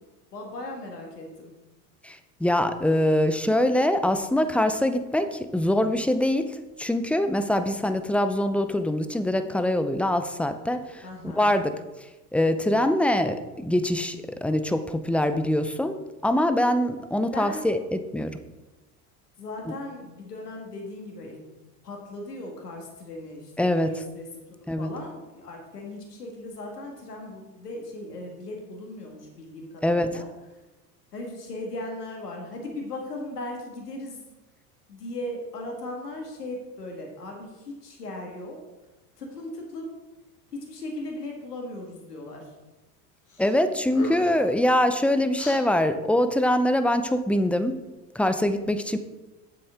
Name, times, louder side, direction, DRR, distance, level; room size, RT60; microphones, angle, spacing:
voice 1, 0.3-1.5 11.0-11.5 17.3-17.7 19.4-21.4 21.8-24.3 24.8-30.3 31.1-34.2 34.9-38.6 39.2-39.9 40.5-42.4, left 1 dB, 90° left, 1 dB, 1.9 m, -37 dB
voice 2, 2.0-6.5 6.8-11.1 11.3-11.8 12.3-18.3 19.7-19.8 23.6-23.9 24.7-24.9 29.8-30.2 43.4-47.8 48.1-49.0, left 1 dB, 5° left, 9 dB, 0.6 m, -24 dB
sound 1, 43.3-43.6 43.9-44.5 45.3-45.6, left 2 dB, 40° left, 3.1 m, -37 dB
9.0 x 7.7 x 3.7 m, 1.1 s
hypercardioid pair, 70°, 46 cm